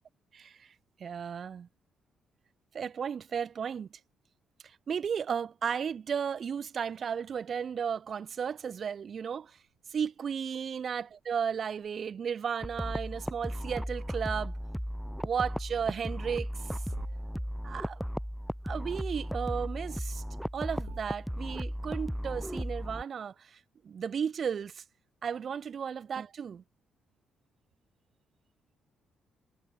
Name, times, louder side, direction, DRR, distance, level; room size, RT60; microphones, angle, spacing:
voice 1, 0.3-0.7 1.0-1.7 2.7-3.9 4.9-9.6 9.9-14.5 15.2-16.5 17.6-18.0 18.6-20.2 20.5-23.6 23.8-24.8 25.2-26.6, right 7 dB, 50° right, 1.7 m, -34 dB
sound 1, 9.6-22.3, right 14 dB, 90° right, 2.0 m, -59 dB
sound 2, 12.6-23.0, equal, ahead, 0.6 m, -36 dB
cardioid pair, 90°, 0 cm